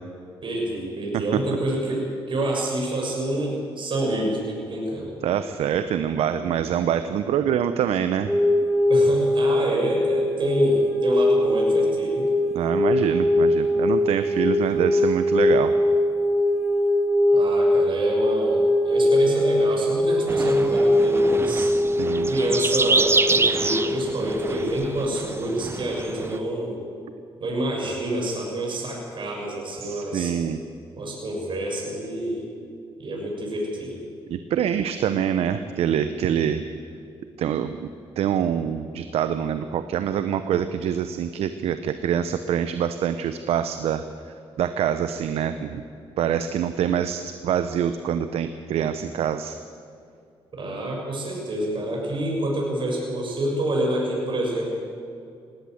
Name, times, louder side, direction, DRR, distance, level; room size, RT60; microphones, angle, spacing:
voice 1, 0.4-5.1 8.9-12.3 17.3-21.7 22.3-26.8 27.4-30.3 31.0-32.5 33.0-34.0 50.5-54.7, right 1 dB, 50° right, -1 dB, 6.6 m, -27 dB
voice 2, 5.2-8.4 12.5-15.8 22.0-22.3 29.8-30.6 34.3-36.6 37.4-37.9 38.2-45.8 46.2-49.6, right 9 dB, 75° right, 10 dB, 0.8 m, -25 dB
sound 1, 8.3-25.2, left 1 dB, ahead, 4.2 m, -21 dB
sound 2, 20.3-26.4, right 3 dB, 25° right, 0.9 m, -26 dB
19.0 x 17.0 x 7.9 m, 2.4 s
cardioid pair, 75°, 10 cm